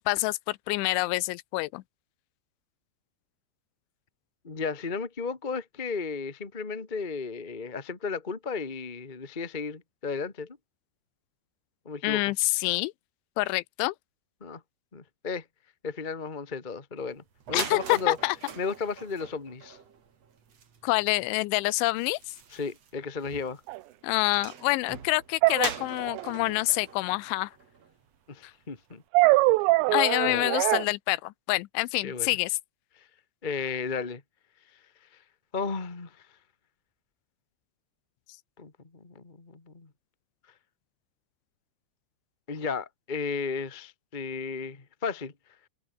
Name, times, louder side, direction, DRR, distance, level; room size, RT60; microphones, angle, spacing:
voice 1, 0.1-1.8 12.0-12.9 13.4-13.9 17.5-18.4 20.8-22.2 24.0-27.5 29.9-32.6, left 21 dB, 85° left, 3.1 m, -27 dB
voice 2, 4.4-10.6 11.8-12.3 14.4-14.6 14.9-15.4 15.8-18.2 18.6-19.8 22.5-23.6 28.3-29.0 30.2-30.4 32.0-32.4 32.9-33.1 33.4-34.2 34.7-34.8 35.5-36.3 38.6-39.9 42.5-45.3, left 5 dB, 35° left, 0.7 m, -34 dB
sound 1, 17.1-17.2 17.4-28.2, right 7 dB, 40° right, 3.2 m, -43 dB
sound 2, 23.7-23.8 25.4-26.4 29.1-30.8, right 22 dB, 80° right, 2.7 m, -23 dB
omnidirectional pair, 5.4 m